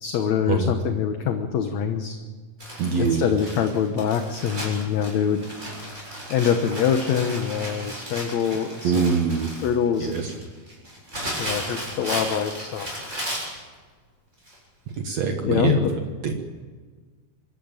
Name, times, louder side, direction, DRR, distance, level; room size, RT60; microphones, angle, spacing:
voice 1, 0.0-2.2 3.0-5.4 6.3-9.0 9.6-10.4 11.4-12.9 15.4-15.9, left 8 dB, 65° left, 6 dB, 2.2 m, -24 dB
Crumpling crinkling, 2.6-13.6 14.5-14.6 14.9-15.0, equal, 20° right, 7.4 m, -35 dB
voice 2, 2.8-3.2 8.8-9.5 10.0-10.3 15.0-15.8 16.2-16.3, right 5 dB, 60° right, 4 dB, 2.4 m, -23 dB
25.0 x 14.0 x 8.9 m, 1.5 s
omnidirectional pair, 3.8 m